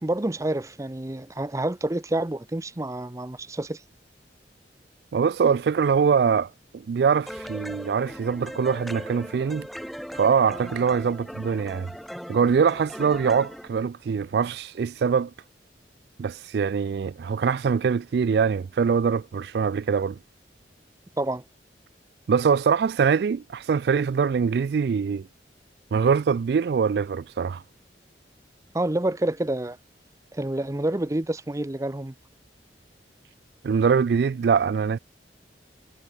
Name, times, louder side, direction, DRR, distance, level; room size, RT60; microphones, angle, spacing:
voice 1, 0.0-3.8 21.2-21.4 28.7-29.8 30.3-32.1, right 1 dB, 20° right, 0.6 m, -28 dB
voice 2, 5.1-6.5 6.9-9.7 10.1-11.9 12.3-15.3 16.2-20.2 22.3-25.2 25.9-27.6 33.6-35.0, right 6 dB, 65° right, 0.3 m, -23 dB
sound 1, 7.3-13.7, equal, ahead, 1.9 m, -39 dB
head